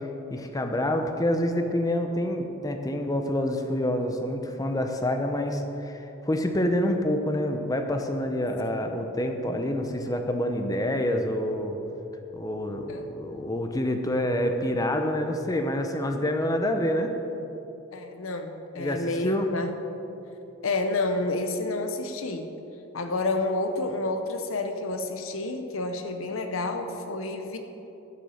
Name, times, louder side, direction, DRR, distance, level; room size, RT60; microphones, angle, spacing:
voice 1, 0.3-11.8 12.3-17.1 18.8-19.5, left 1 dB, 20° left, 4 dB, 0.7 m, -27 dB
voice 2, 17.9-19.7 20.6-22.5 22.9-27.6, left 2 dB, 85° left, 6 dB, 0.8 m, -29 dB
12.0 x 6.7 x 6.4 m, 3.0 s
head